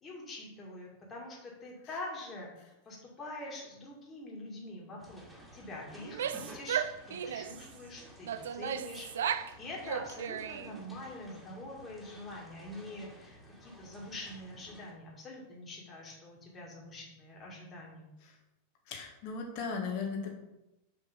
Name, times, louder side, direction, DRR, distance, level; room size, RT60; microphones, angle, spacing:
voice 1, 0.0-5.2 5.5-18.1, left 2 dB, 20° left, -3 dB, 2.1 m, -45 dB
sound 1, 5.0-14.9, right 1 dB, 10° right, 2.2 m, -54 dB
Female speech woman speaking / Yell, 6.0-7.6 8.3-9.5 9.8-10.8, right 9 dB, 60° right, 0.4 m, -35 dB
voice 2, 18.9-20.3, left 5 dB, 45° left, 2 dB, 1.5 m, -36 dB
6.4 x 5.2 x 5.1 m, 0.93 s
figure-of-eight pair, 90°, 0 cm